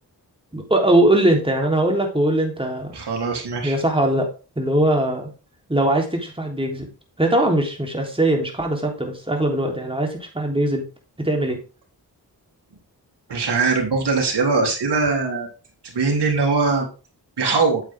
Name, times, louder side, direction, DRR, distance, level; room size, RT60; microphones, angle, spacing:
voice 1, 0.5-2.9 3.6-4.3 4.6-5.3 5.7-6.9 7.2-10.8 11.2-11.6, right 1 dB, 15° right, 1 dB, 3.6 m, -20 dB
voice 2, 2.9-3.8 13.3-15.5 15.9-16.9 17.4-17.8, right 4 dB, 80° right, 0 dB, 3.3 m, -21 dB
8.6 x 8.0 x 3.7 m, 0.33 s
cardioid pair, 60°, 40 cm